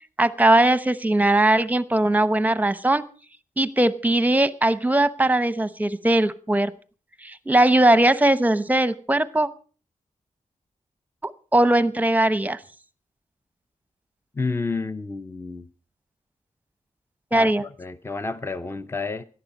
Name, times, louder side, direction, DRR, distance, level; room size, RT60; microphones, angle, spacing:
voice 1, 0.2-3.0 3.6-6.7 7.2-9.5 11.2-12.6 17.3-17.6, right 1 dB, 10° right, 0.9 m, -20 dB
voice 2, 14.4-15.7 17.3-19.3, left 3 dB, 20° left, 0.7 m, -30 dB
17.5 x 11.5 x 5.3 m
wide cardioid pair, 115°, 14 cm